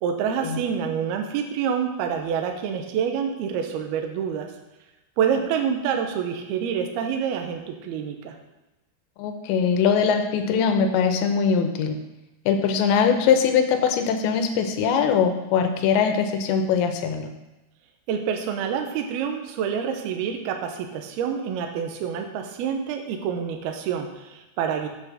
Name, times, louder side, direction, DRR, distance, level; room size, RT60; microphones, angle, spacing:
voice 1, 0.0-4.5 5.2-8.4 18.1-24.9, right 7 dB, 70° right, 4 dB, 2.5 m, -27 dB
voice 2, 9.2-12.0 12.5-17.3, left 6 dB, 80° left, 6 dB, 3.0 m, -21 dB
8.1 x 6.4 x 6.5 m, 1.0 s
omnidirectional pair, 5.3 m